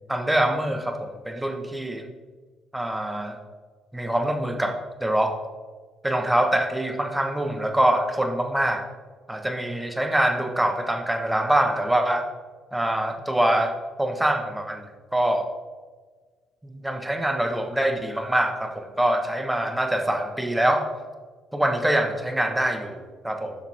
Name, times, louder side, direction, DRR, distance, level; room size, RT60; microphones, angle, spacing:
voice 1, 0.1-2.1 2.7-3.4 3.9-4.7 5.0-5.3 6.0-8.8 9.3-12.2 12.7-13.7 14.0-14.8 15.1-15.5 16.6-20.8 21.5-23.5, right 1 dB, 10° right, 4 dB, 1.3 m, -24 dB
8.9 x 5.7 x 3.6 m, 1.4 s
supercardioid pair, 60°, 0 cm